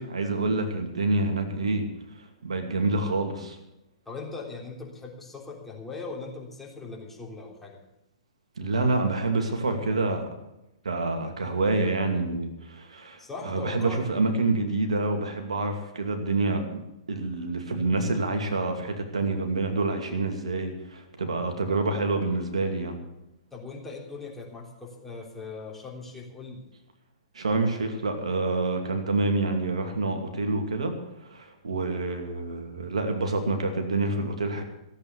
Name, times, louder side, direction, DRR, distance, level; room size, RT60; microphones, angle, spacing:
voice 1, 0.0-1.9 2.1-3.6 8.6-10.3 10.8-16.8 17.1-22.9 27.3-30.9 31.2-34.6, right 3 dB, 80° right, 5 dB, 2.6 m, -27 dB
voice 2, 4.0-7.8 13.2-14.0 23.5-26.6, left 4 dB, 5° left, -2 dB, 3.4 m, -39 dB
15.0 x 8.4 x 8.4 m, 0.88 s
hypercardioid pair, 120°, 3 cm